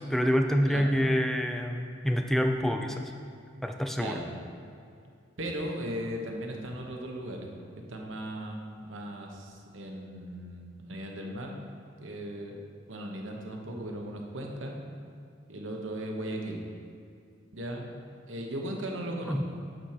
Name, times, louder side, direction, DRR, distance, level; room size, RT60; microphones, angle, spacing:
voice 1, 0.0-3.1 3.6-4.2 19.3-19.4, equal, ahead, 4 dB, 0.4 m, -27 dB
voice 2, 5.4-7.5 7.9-11.6 12.0-12.6 12.9-14.7 15.5-16.6 17.5-17.9 18.3-19.4, right 1 dB, 85° right, 1 dB, 1.1 m, -37 dB
9.1 x 4.4 x 6.7 m, 2.4 s
head